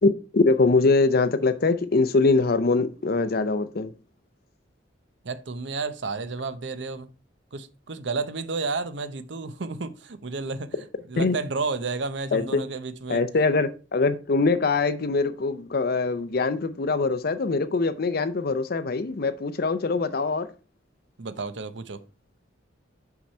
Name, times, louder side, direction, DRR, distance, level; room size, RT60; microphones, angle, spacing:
voice 1, 0.0-3.9 11.2-11.4 12.3-12.6 13.1-20.5, left 3 dB, 55° left, 0.6 m, -23 dB
voice 2, 5.2-7.1 7.5-10.8 11.1-13.2 21.2-22.0, right 4 dB, 65° right, 0.7 m, -31 dB
5.9 x 5.6 x 4.3 m
head